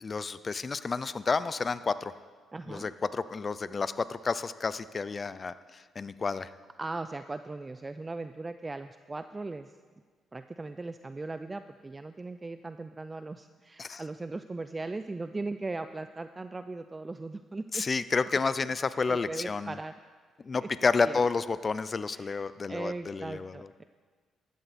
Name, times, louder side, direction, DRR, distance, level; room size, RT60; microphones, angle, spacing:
voice 1, 0.0-2.1 2.7-6.5 13.8-14.0 17.7-19.7 20.4-23.7, left 4 dB, 35° left, 15 dB, 0.5 m, -30 dB
voice 2, 2.5-2.9 6.8-9.7 10.3-17.9 18.6-18.7 19.1-19.9 20.6-20.7 21.0-21.2 22.1-23.8, right 3 dB, 20° right, 10 dB, 0.4 m, -38 dB
14.5 x 12.5 x 4.3 m, 1.5 s
cardioid pair, 90°, 0 cm